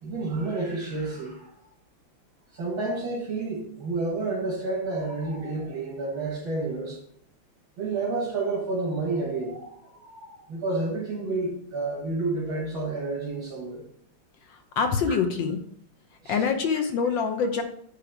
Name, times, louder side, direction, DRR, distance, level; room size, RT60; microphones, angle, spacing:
voice 1, 0.0-1.5 2.5-7.0 7.8-13.8 16.2-16.4, right 3 dB, 70° right, -5 dB, 2.7 m, -30 dB
voice 2, 14.5-15.6 16.3-17.6, left 5 dB, 70° left, 5 dB, 1.5 m, -25 dB
9.9 x 3.4 x 5.9 m, 0.64 s
omnidirectional pair, 2.3 m